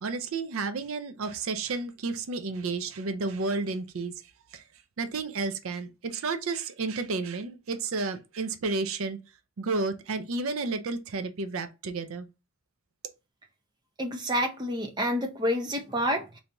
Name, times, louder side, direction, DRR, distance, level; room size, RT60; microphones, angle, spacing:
voice 1, 0.0-4.6 5.0-9.2 9.6-12.3, right 3 dB, 70° right, 0.5 m, -32 dB
voice 2, 14.0-16.4, equal, 20° right, 0.6 m, -28 dB
2.9 x 2.7 x 3.3 m
head